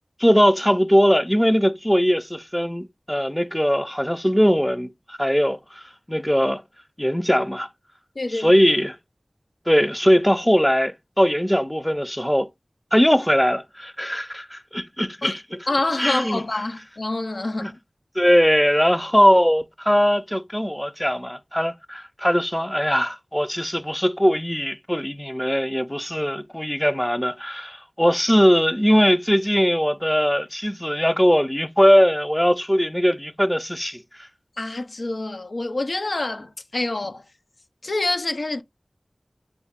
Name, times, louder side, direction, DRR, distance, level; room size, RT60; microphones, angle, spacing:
voice 1, 0.2-5.6 6.1-6.6 7.0-7.7 8.3-9.0 9.7-12.5 12.9-15.7 16.0-16.4 17.6-17.7 18.2-34.0, equal, 10° left, 0.5 m, -20 dB
voice 2, 8.2-8.5 15.2-15.3 15.7-17.8 34.6-37.2 37.8-38.6, left 2 dB, 80° left, 0.5 m, -26 dB
4.8 x 2.3 x 3.5 m
wide cardioid pair, 55°, 0 cm